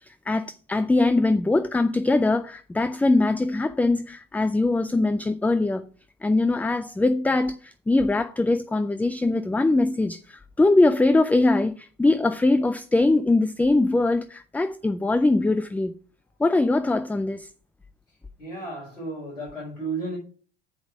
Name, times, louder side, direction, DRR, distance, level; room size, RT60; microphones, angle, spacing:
voice 1, 0.0-5.8 6.2-15.9 16.4-17.5, left 2 dB, 5° left, 0.4 m, -22 dB
voice 2, 18.4-20.2, right 3 dB, 85° left, 4.8 m, -33 dB
7.5 x 5.1 x 6.1 m
hypercardioid pair, 80°, 37 cm